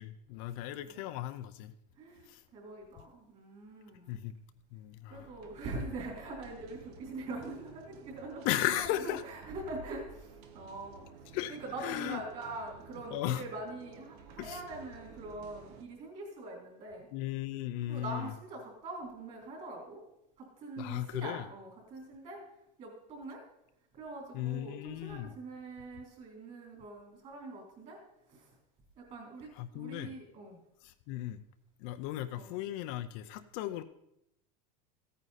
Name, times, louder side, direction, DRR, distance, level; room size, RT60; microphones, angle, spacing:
voice 1, 0.0-1.7 2.3-2.4 4.1-4.3 4.7-5.3 8.4-9.2 11.3-12.2 13.1-13.4 14.4-14.6 17.1-18.3 20.8-21.4 24.3-25.3 29.6-30.1 30.8-31.4 31.8-33.8, left 13 dB, 55° left, 10 dB, 0.6 m, -36 dB
voice 2, 2.0-4.2 5.1-17.1 17.9-20.0 20.4-22.4 22.8-23.4 23.9-28.0 28.3-28.5 29.0-30.6 32.3-32.5, right 2 dB, 30° right, 0 dB, 3.8 m, -43 dB
sound 1, 5.1-15.8, right 6 dB, 65° right, 1.5 m, -53 dB
15.0 x 9.1 x 4.1 m, 0.81 s
cardioid pair, 170°, 21 cm